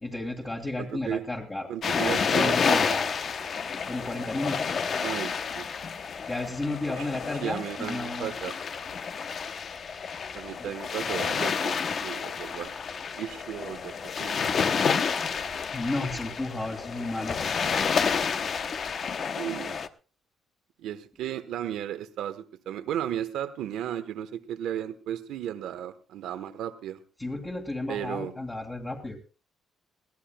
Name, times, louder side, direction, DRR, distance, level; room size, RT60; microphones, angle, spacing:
voice 1, 0.0-1.7 2.0-3.2 3.9-4.8 6.3-8.4 10.6-10.7 15.7-17.5 27.2-29.2, left 2 dB, 15° left, -2 dB, 2.2 m, -33 dB
voice 2, 0.8-1.2 1.7-3.0 5.0-5.7 7.0-7.1 7.4-8.5 10.3-12.7 13.1-15.3 19.4-19.8 20.8-27.0 27.9-28.3, right 10 dB, 85° right, 9 dB, 1.2 m, -35 dB
sound 1, 1.8-19.9, left 6 dB, 40° left, 0.9 m, -30 dB
22.0 x 16.5 x 2.3 m, 0.34 s
cardioid pair, 155°, 0 cm